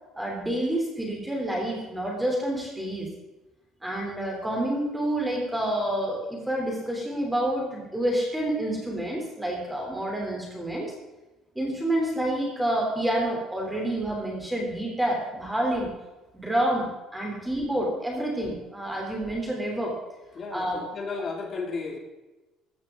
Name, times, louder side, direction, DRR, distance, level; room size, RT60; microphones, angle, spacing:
voice 1, 0.1-3.1 3.8-10.9 11.5-15.9 16.3-19.9 20.5-20.8, right 1 dB, 5° right, -1 dB, 3.2 m, -28 dB
voice 2, 20.3-22.0, left 4 dB, 35° left, 2 dB, 2.5 m, -34 dB
14.5 x 14.0 x 3.8 m, 1.1 s
cardioid pair, 150°, 0 cm